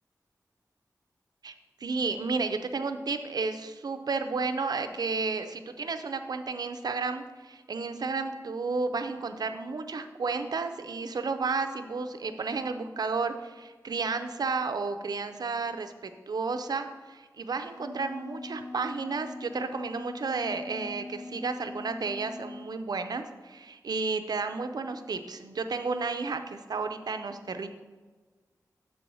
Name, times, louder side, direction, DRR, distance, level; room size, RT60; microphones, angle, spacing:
voice 1, 1.8-15.9 16.3-27.7, right 4 dB, 75° right, 8 dB, 0.5 m, -32 dB
Wind instrument woodwind instrument, 17.5-22.7, left 2 dB, 50° left, 0.4 m, -42 dB
7.6 x 4.4 x 5.4 m, 1.4 s
wide cardioid pair, 100°, 7 cm